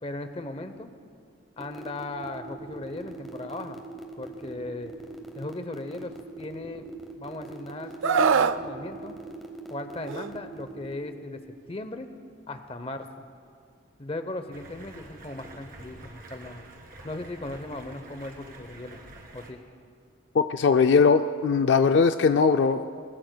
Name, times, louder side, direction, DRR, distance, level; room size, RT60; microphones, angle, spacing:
voice 1, 0.0-0.9 1.6-3.8 4.2-4.9 5.3-6.9 7.2-9.1 9.7-11.4 11.7-12.1 12.5-13.1 14.0-16.6 17.0-19.0 19.3-19.6, left 2 dB, 30° left, 9 dB, 0.7 m, -37 dB
sound 1, 1.6-10.9, right 2 dB, ahead, 0.9 m, -42 dB
Screaming, 8.0-8.6 10.1-10.3, right 5 dB, 75° right, 0.4 m, -22 dB
Stream, 14.5-19.5, right 2 dB, 45° right, 1.9 m, -47 dB
voice 2, 20.3-22.9, left 5 dB, 60° left, 9 dB, 0.3 m, -20 dB
20.5 x 20.5 x 2.2 m, 2.2 s
head